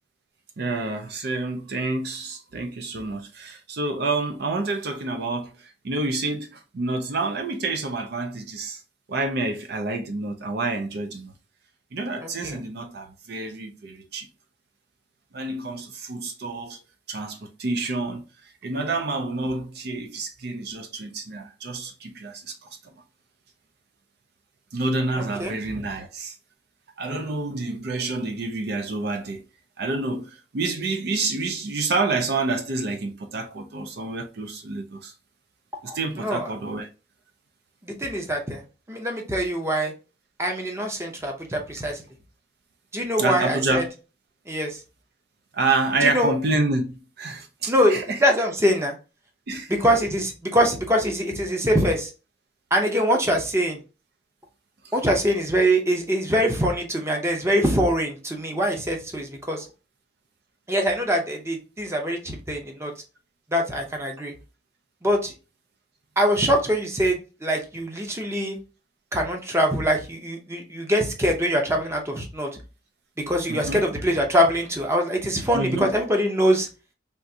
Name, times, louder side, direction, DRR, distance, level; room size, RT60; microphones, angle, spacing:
voice 1, 0.6-8.8 9.1-11.3 11.9-14.3 15.3-16.8 17.1-18.2 18.6-22.6 24.7-26.4 27.0-29.4 29.8-35.1 35.8-36.9 43.2-43.9 45.5-48.2 49.5-49.7 73.5-73.9 75.5-75.9, right 3 dB, 60° right, 0.5 m, -28 dB
voice 2, 12.2-12.6 25.2-25.5 35.9-36.5 37.8-38.6 38.9-39.9 40.4-42.0 42.9-43.8 44.5-44.8 46.0-46.3 47.7-48.9 49.7-52.1 52.7-53.8 54.9-59.7 60.7-62.9 63.5-64.3 65.0-65.3 66.2-68.6 69.1-72.5 73.3-76.7, equal, 15° right, 0.6 m, -23 dB
3.5 x 2.5 x 2.7 m
head